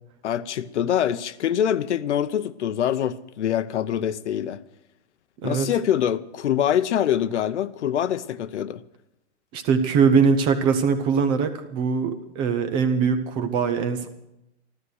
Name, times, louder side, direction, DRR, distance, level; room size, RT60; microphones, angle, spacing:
voice 1, 0.2-4.6 5.4-8.8, left 10 dB, 75° left, 0.9 m, -24 dB
voice 2, 9.5-14.1, right 6 dB, 15° right, 0.5 m, -22 dB
14.0 x 13.0 x 6.4 m
hypercardioid pair, 160°, 35 cm